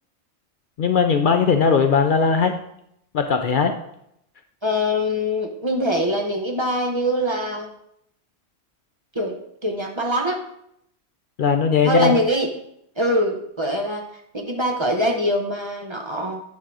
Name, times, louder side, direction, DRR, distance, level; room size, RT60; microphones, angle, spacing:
voice 1, 0.8-2.5 3.1-3.8 11.4-12.1, left 5 dB, 60° left, 6 dB, 0.6 m, -18 dB
voice 2, 4.6-7.7 9.1-9.4 9.6-10.4 11.8-12.5 13.0-14.0 14.3-16.4, equal, 30° right, 1 dB, 0.8 m, -23 dB
9.5 x 3.8 x 4.7 m, 0.74 s
omnidirectional pair, 1.1 m